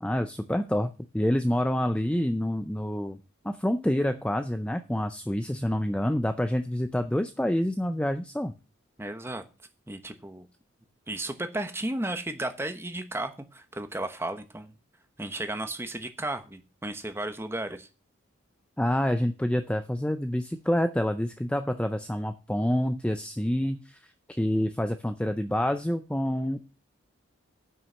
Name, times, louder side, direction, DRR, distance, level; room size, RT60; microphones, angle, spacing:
voice 1, 0.0-3.2 3.4-8.5 18.8-26.6, equal, 5° left, 9 dB, 0.4 m, -27 dB
voice 2, 9.0-9.4 9.9-10.5 11.1-14.7 15.2-17.9, right 1 dB, 10° right, 8 dB, 1.0 m, -34 dB
9.3 x 6.1 x 7.3 m, 0.31 s
head